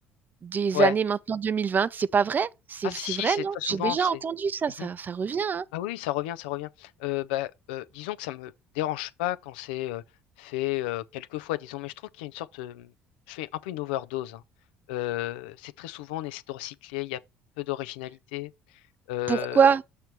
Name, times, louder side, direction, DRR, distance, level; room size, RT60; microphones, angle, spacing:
voice 1, 0.4-5.7 19.3-19.8, right 6 dB, 35° right, 0.4 m, -25 dB
voice 2, 2.8-4.2 4.8-4.9 5.7-10.0 10.4-12.9 13.3-14.4 14.9-17.2 17.6-18.5 19.1-19.7, left 16 dB, 85° left, 0.4 m, -32 dB
6.7 x 3.1 x 5.9 m
hypercardioid pair, 65°, 5 cm